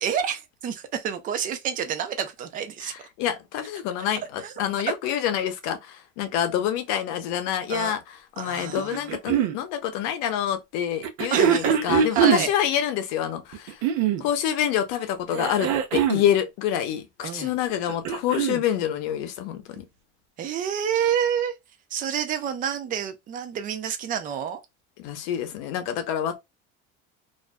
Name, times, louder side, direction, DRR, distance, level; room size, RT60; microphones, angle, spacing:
voice 1, 0.0-2.9 4.1-4.5 5.0-5.1 7.7-7.9 8.4-9.1 11.3-12.5 17.2-17.5 20.4-21.5 21.9-24.6, right 8 dB, 30° right, 0.4 m, -29 dB
voice 2, 2.8-8.0 8.4-13.8 14.2-19.8 25.0-26.4, left 10 dB, 70° left, 0.7 m, -27 dB
sound 1, 8.8-9.6 11.0-12.5 13.5-14.3 15.3-16.3 17.7-18.6 19.8-19.9, right 9 dB, 65° right, 0.7 m, -23 dB
2.4 x 2.2 x 2.3 m
cardioid pair, 165°, 30 cm